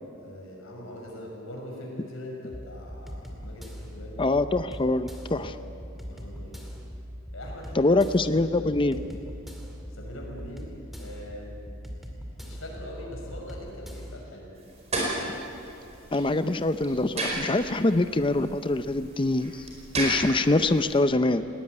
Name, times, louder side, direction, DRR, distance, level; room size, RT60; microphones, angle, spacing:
voice 1, 0.2-4.4 5.3-5.6 6.1-6.7 7.3-8.9 9.9-11.6 12.4-14.6, left 1 dB, 80° left, -1 dB, 6.3 m, -42 dB
sound 1, 2.5-14.2, equal, ahead, 2.3 m, -41 dB
voice 2, 4.2-5.5 7.8-9.0 16.1-19.7 20.0-21.4, left 2 dB, 25° left, 11 dB, 0.6 m, -24 dB
sound 2, 14.6-21.0, right 1 dB, 30° right, 5.0 m, -34 dB
19.5 x 18.5 x 9.6 m, 2.8 s
head